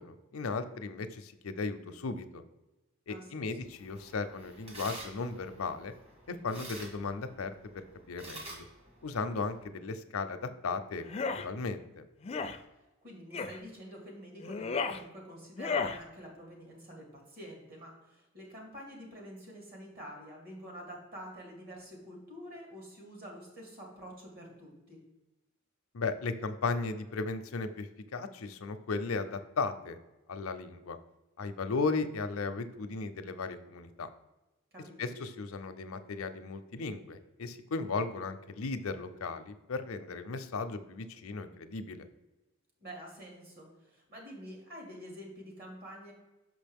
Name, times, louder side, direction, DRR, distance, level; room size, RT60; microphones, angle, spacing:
voice 1, 0.0-2.4 3.1-5.9 6.3-7.5 8.1-8.6 9.0-11.1 11.4-12.0 25.9-30.0 30.3-31.0 31.4-34.1 35.0-42.0, left 4 dB, 85° left, 9 dB, 0.6 m, -36 dB
voice 2, 3.1-3.6 13.0-25.0 34.7-35.0 42.8-46.1, equal, 50° right, -1 dB, 2.3 m, -47 dB
sound 1, 3.6-9.7, right 2 dB, 30° right, 1.4 m, -49 dB
sound 2, 11.0-11.5 12.2-12.6 13.3-13.6 14.4-15.0 15.6-16.0, left 4 dB, 30° left, 0.4 m, -33 dB
6.2 x 5.3 x 3.5 m, 1.1 s
head